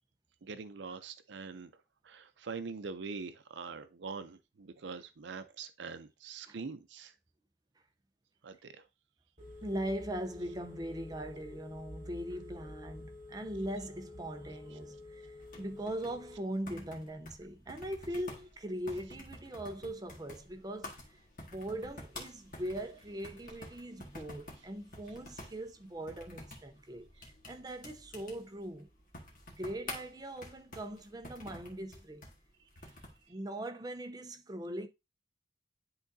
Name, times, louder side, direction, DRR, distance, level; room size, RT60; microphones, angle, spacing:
voice 1, 0.4-1.7 2.0-7.1 8.4-8.8, right 4 dB, 75° right, 0.5 m, -43 dB
Telephone, 9.4-16.4, left 1 dB, 35° right, 3.4 m, -49 dB
voice 2, 9.6-28.9 29.5-32.2 33.3-34.9, right 1 dB, 20° right, 0.6 m, -40 dB
sound 1, 15.4-33.2, left 2 dB, 45° left, 1.7 m, -50 dB
10.5 x 3.8 x 2.6 m
head